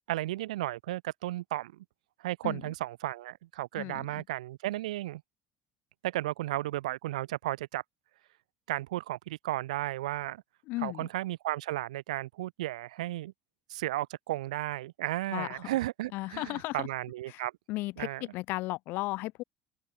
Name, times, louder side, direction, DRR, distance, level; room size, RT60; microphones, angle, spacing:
voice 1, 0.1-1.7 2.2-5.2 6.0-7.8 8.7-10.4 10.8-13.3 13.7-17.5 18.0-18.2, right 16 dB, 85° right, 1.3 m, -34 dB
voice 2, 3.8-4.2 10.7-11.1 15.3-15.6 16.1-16.9 17.3-17.4 17.7-18.1 18.3-19.4, left 20 dB, 65° left, 0.4 m, -35 dB
hypercardioid pair, 75°, 4 cm